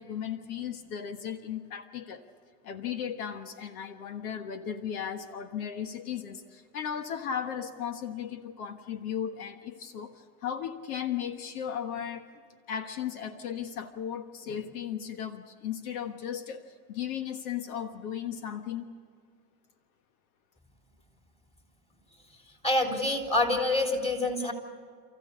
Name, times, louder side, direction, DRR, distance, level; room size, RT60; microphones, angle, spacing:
voice 1, 0.0-2.3 2.6-12.3 12.7-18.9, left 8 dB, 75° left, 9 dB, 1.4 m, -36 dB
voice 2, 22.6-24.5, left 2 dB, 15° left, 3 dB, 3.5 m, -26 dB
29.0 x 15.0 x 8.3 m, 2.1 s
supercardioid pair, 110°, 44 cm